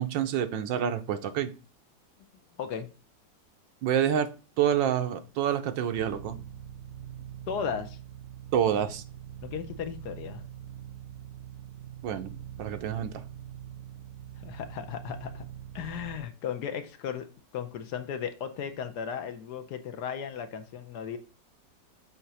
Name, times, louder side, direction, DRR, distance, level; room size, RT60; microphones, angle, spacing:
voice 1, 0.0-1.5 3.8-4.3 4.6-6.4 8.5-9.0 12.0-12.3 12.6-13.1, right 9 dB, 90° right, 1.5 m, -27 dB
voice 2, 2.6-2.9 7.5-8.0 9.4-10.4 14.4-15.5 15.7-17.3 17.5-21.2, left 7 dB, 70° left, 1.3 m, -35 dB
sound 1, 6.0-16.2, right 10 dB, 60° right, 0.9 m, -43 dB
7.7 x 2.9 x 5.5 m
omnidirectional pair, 1.9 m